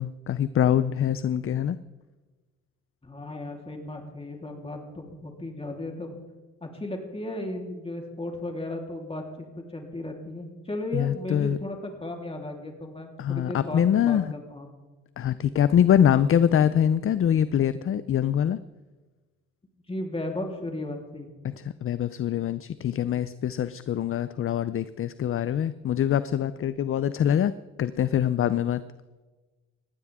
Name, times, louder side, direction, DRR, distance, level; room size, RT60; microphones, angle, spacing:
voice 1, 0.0-1.8 10.9-11.6 13.2-14.3 15.2-18.6 21.4-27.5 27.8-28.8, left 9 dB, 45° left, 15 dB, 0.6 m, -24 dB
voice 2, 3.0-6.1 6.6-14.7 19.9-21.3, left 1 dB, 20° left, 1 dB, 3.7 m, -35 dB
19.0 x 15.5 x 3.7 m, 1.2 s
cardioid pair, 90°, 30 cm